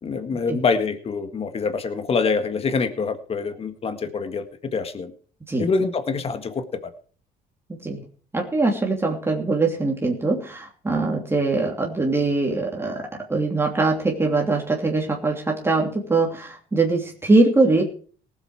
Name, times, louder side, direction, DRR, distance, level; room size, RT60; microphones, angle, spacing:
voice 1, 0.0-4.4 4.7-5.1 5.6-6.9, left 4 dB, 35° left, 9 dB, 1.7 m, -25 dB
voice 2, 7.7-8.0 8.3-17.8, right 3 dB, 15° right, -1 dB, 2.9 m, -22 dB
18.5 x 8.1 x 4.8 m, 0.43 s
cardioid pair, 110°, 17 cm